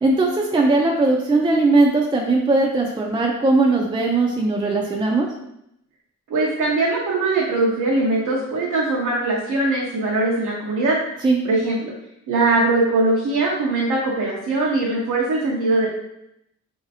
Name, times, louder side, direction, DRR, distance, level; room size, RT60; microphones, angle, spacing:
voice 1, 0.0-5.3 11.2-11.4, right 2 dB, 15° right, -1 dB, 0.5 m, -19 dB
voice 2, 6.3-11.0 11.4-11.9 12.3-15.9, right 2 dB, 80° right, -5 dB, 0.8 m, -21 dB
3.1 x 2.8 x 2.7 m, 0.79 s
cardioid pair, 75°, 31 cm